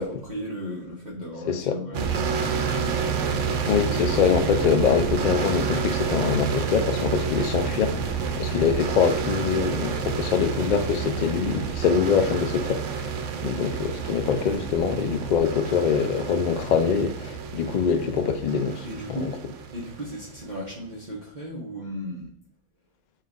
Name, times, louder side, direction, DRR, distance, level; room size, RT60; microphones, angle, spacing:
voice 1, 0.0-3.5 18.8-19.4 19.7-22.3, equal, 40° right, 0.9 m, -36 dB
sound 1, 1.9-20.6, right 6 dB, 80° right, 0.9 m, -29 dB
voice 2, 3.7-13.1 13.4-19.2, left 6 dB, 65° left, 0.4 m, -24 dB
4.2 x 2.4 x 3.7 m
omnidirectional pair, 1.3 m